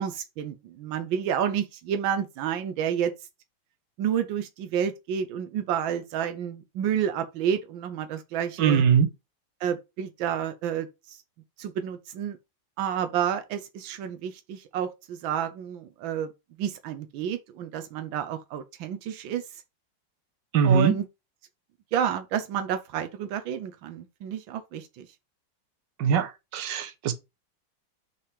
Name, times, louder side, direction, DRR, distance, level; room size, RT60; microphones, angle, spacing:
voice 1, 0.0-3.1 4.0-8.8 9.6-11.2 11.6-12.4 12.8-16.3 16.6-19.6 20.6-21.0 21.9-25.1, right 8 dB, 90° right, 1.5 m, -30 dB
voice 2, 8.6-9.1 20.5-20.9 26.0-27.1, right 7 dB, 70° right, 1.6 m, -21 dB
5.7 x 4.8 x 4.9 m
omnidirectional pair, 2.1 m